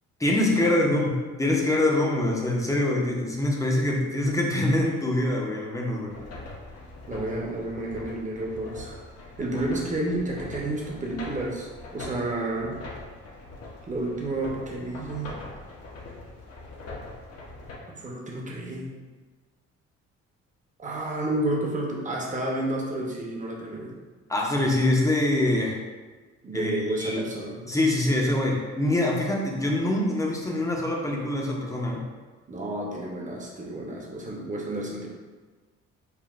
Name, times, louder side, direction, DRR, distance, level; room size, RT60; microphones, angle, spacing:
voice 1, 0.2-6.2 24.3-25.8 26.5-26.7 27.0-27.3 27.6-32.0, left 1 dB, 10° left, -1 dB, 0.6 m, -24 dB
sound 1, 6.1-17.8, left 2 dB, 55° left, 0.9 m, -42 dB
voice 2, 7.1-9.0 9.4-12.8 13.9-15.3 17.9-18.9 20.8-24.0 26.4-27.6 32.5-35.1, right 1 dB, 25° right, -2 dB, 0.8 m, -30 dB
5.7 x 2.3 x 2.4 m, 1.4 s
cardioid pair, 90°, 30 cm